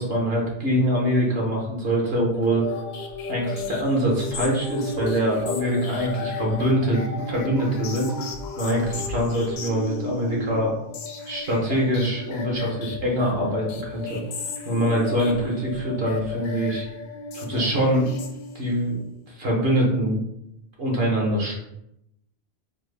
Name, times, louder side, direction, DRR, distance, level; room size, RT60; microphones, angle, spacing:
voice 1, 0.0-2.7 3.3-8.1 8.6-10.8 11.3-14.2 14.6-16.9 17.3-18.1 18.5-19.0 19.3-20.2 20.8-21.6, equal, 65° right, -2 dB, 1.2 m, -24 dB
sound 1, 2.4-18.9, left 3 dB, 75° left, 0.8 m, -34 dB
4.1 x 2.1 x 3.3 m, 0.81 s
omnidirectional pair, 1.1 m